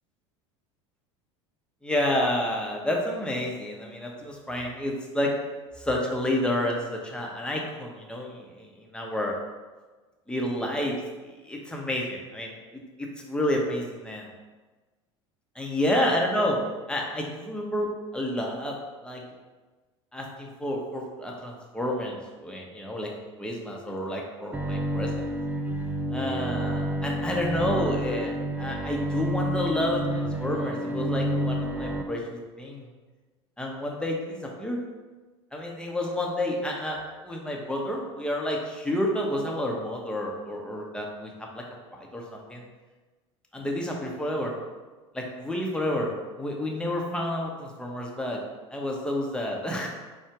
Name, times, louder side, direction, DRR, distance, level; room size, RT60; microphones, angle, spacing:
voice 1, 1.8-5.3 5.8-9.4 10.3-11.0 11.2-14.3 15.5-16.6 16.9-18.8 19.0-19.2 20.1-23.1 23.4-25.2 26.1-32.9 33.6-34.8 35.5-41.6 41.9-42.6 43.5-44.5 45.1-46.1 46.4-48.4 48.7-49.9, left 1 dB, 5° left, -1 dB, 1.0 m, -30 dB
Bowed string instrument, 24.5-32.0, right 1 dB, 10° right, 0.4 m, -29 dB
4.4 x 2.4 x 4.7 m, 1.3 s
hypercardioid pair, 80°, 15 cm